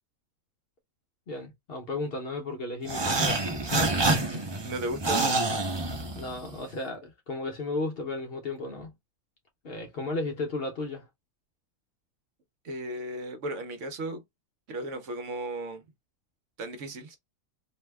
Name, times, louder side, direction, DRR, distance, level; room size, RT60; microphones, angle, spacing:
voice 1, 1.3-3.9 4.2-4.4 6.1-8.9 9.6-11.0, left 2 dB, 55° left, 0.8 m, -34 dB
sound 1, 2.8-6.6, right 2 dB, 30° right, 0.5 m, -27 dB
voice 2, 4.6-5.3 12.6-14.2 14.7-15.8 16.6-17.2, right 1 dB, 65° right, 1.0 m, -35 dB
2.7 x 2.1 x 3.3 m
omnidirectional pair, 1.4 m